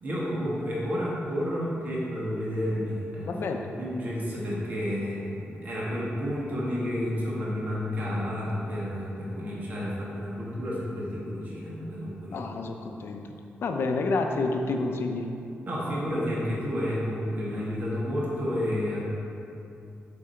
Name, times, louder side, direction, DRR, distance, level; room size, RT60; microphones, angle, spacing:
voice 1, 0.0-3.3 3.8-12.4 15.7-19.0, equal, 45° right, -6 dB, 1.6 m, -30 dB
voice 2, 3.2-3.7 12.3-15.3, left 3 dB, 65° left, 4 dB, 0.6 m, -29 dB
7.5 x 6.1 x 4.5 m, 2.6 s
wide cardioid pair, 170°, 4 cm